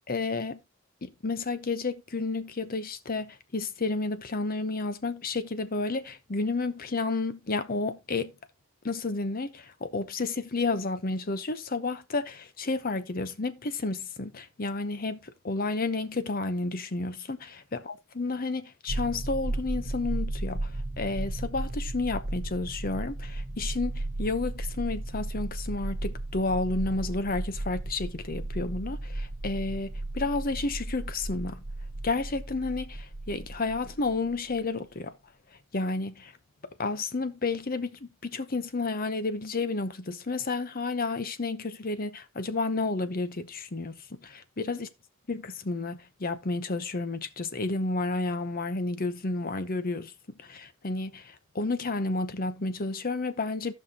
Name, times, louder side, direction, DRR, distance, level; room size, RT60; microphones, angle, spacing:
voice 1, 0.1-0.6 1.0-8.3 8.8-20.7 21.0-31.6 32.0-35.1 35.7-36.3 36.8-44.9 45.3-50.1 50.4-53.7, left 3 dB, 45° left, 0.8 m, -31 dB
sound 1, 18.9-34.6, right 2 dB, 50° right, 1.1 m, -35 dB
17.0 x 5.7 x 2.9 m
head